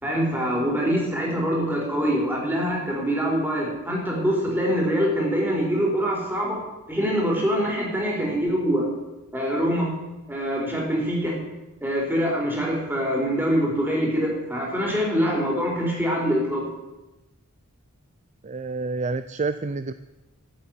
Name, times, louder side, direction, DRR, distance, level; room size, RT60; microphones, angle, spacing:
voice 1, 0.0-6.6 6.9-8.9 9.3-10.0 10.3-11.4 11.8-16.6, equal, 10° right, -2 dB, 4.4 m, -24 dB
voice 2, 18.4-19.9, right 3 dB, 30° right, 12 dB, 0.5 m, -28 dB
14.0 x 8.6 x 9.3 m, 1.0 s
head